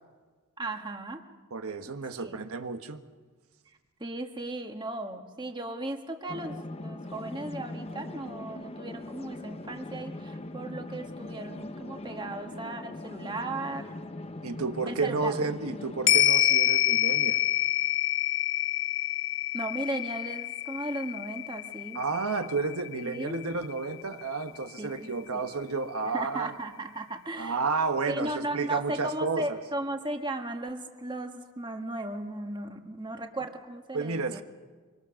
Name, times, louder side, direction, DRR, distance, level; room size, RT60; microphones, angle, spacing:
voice 1, 0.6-1.2 2.2-2.4 4.0-13.9 14.9-15.3 19.5-22.0 23.0-23.4 24.8-25.5 26.0-27.6 28.1-34.4, right 1 dB, 20° right, 1.4 m, -36 dB
voice 2, 1.5-3.0 14.4-17.4 21.9-26.5 27.4-29.6 33.9-34.4, right 4 dB, 90° right, 1.4 m, -31 dB
sound 1, 6.3-16.1, left 2 dB, 25° left, 0.7 m, -41 dB
sound 2, 16.1-24.6 25.0-25.1, left 14 dB, 60° left, 0.6 m, -27 dB
24.5 x 24.0 x 6.4 m
head